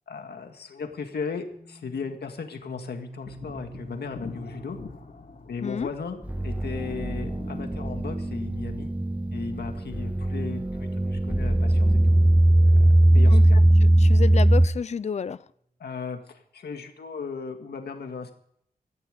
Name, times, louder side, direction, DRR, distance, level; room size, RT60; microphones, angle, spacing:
voice 1, 0.1-4.8 5.5-8.9 9.3-12.2 12.6-13.6 15.8-18.3, left 5 dB, 85° left, 5 dB, 2.0 m, -36 dB
sound 1, 0.8-1.0 1.5-2.2 2.6-5.0 5.7-9.7 11.5-11.7, right 2 dB, 40° right, 6.7 m, -47 dB
sound 2, 3.3-8.3, left 3 dB, 60° left, 3.3 m, -45 dB
voice 2, 5.6-5.9 13.1-13.4 14.0-15.4, left 6 dB, 45° left, 17 dB, 0.5 m, -30 dB
sound 3, 6.3-14.7, right 1 dB, 10° right, 0.7 m, -20 dB
18.0 x 13.5 x 5.3 m, 0.69 s
wide cardioid pair, 120°, 16 cm